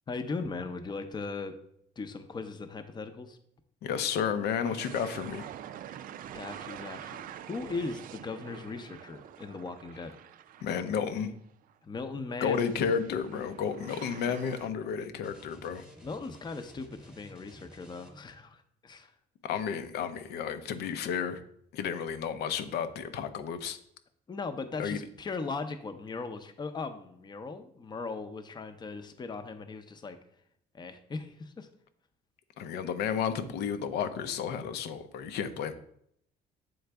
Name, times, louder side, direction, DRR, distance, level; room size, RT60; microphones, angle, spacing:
voice 1, 0.1-1.6 2.0-3.4 6.3-7.2 7.5-10.1 11.8-12.6 16.0-19.1 24.3-30.2 30.7-31.7, left 4 dB, 25° left, 8 dB, 0.6 m, -38 dB
voice 2, 3.8-5.5 10.6-11.3 12.4-15.8 19.4-21.4 21.7-23.8 24.8-25.0 32.6-35.7, left 7 dB, 75° left, 10 dB, 0.7 m, -32 dB
sound 1, 4.6-11.2 11.6-11.7 12.5-14.7, right 10 dB, 55° right, 0.4 m, -46 dB
sound 2, 15.2-18.4, right 1 dB, 5° right, 1.1 m, -53 dB
7.8 x 3.9 x 3.4 m, 0.70 s
cardioid pair, 110°, 17 cm